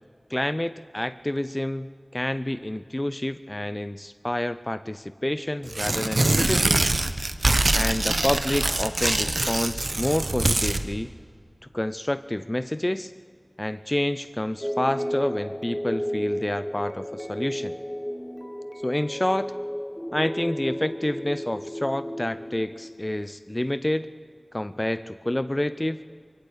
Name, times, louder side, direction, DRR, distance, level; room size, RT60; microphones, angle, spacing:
voice 1, 0.3-7.0 7.7-11.1 11.7-13.1 13.6-17.7 18.8-19.5 20.1-24.1 24.5-26.0, left 1 dB, 25° left, 14 dB, 0.5 m, -28 dB
Tearing, 5.7-10.8, right 2 dB, 65° right, 1.0 m, -24 dB
sound 1, 14.6-22.9, equal, 5° left, 1.2 m, -33 dB
23.0 x 15.5 x 8.3 m, 2.1 s
wide cardioid pair, 45°, 0 cm